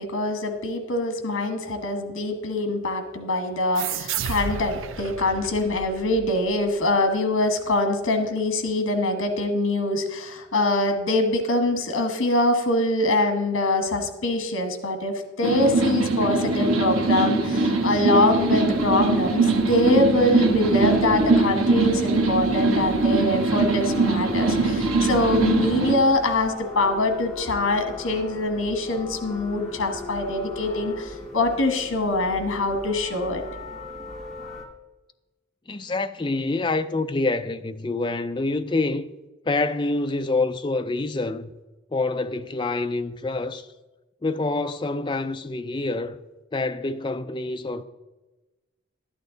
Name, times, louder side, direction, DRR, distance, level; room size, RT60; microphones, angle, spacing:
voice 1, 0.0-33.4, left 2 dB, 80° left, 1.4 m, -24 dB
sound 1, 3.8-7.0, right 7 dB, 70° right, 0.5 m, -33 dB
sound 2, 15.4-25.9, right 3 dB, 90° right, 1.1 m, -22 dB
sound 3, 18.3-34.7, left 2 dB, ahead, 1.2 m, -39 dB
voice 2, 35.7-39.1 39.5-41.5 41.9-43.7 44.2-46.2 46.5-47.8, left 2 dB, 20° left, 0.4 m, -26 dB
11.5 x 8.8 x 3.9 m
head